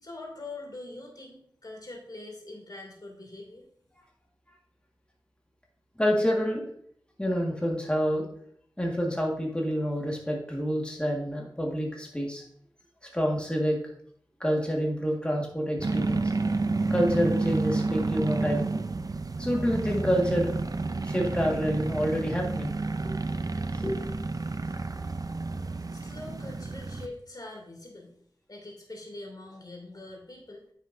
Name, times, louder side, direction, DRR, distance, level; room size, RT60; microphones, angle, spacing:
voice 1, 0.0-3.7 25.9-28.1 28.5-30.6, left 2 dB, 50° left, 0 dB, 2.7 m, -43 dB
voice 2, 6.0-6.7 7.2-8.3 8.8-12.4 13.1-13.8 14.4-16.2 16.9-18.7 19.4-20.6 21.1-22.7 23.0-23.1 23.7-24.2, equal, 10° left, -1 dB, 1.7 m, -27 dB
sound 1, 15.8-27.1, right 3 dB, 45° right, 0.5 m, -30 dB
9.5 x 6.5 x 2.6 m, 0.63 s
wide cardioid pair, 55°, 8 cm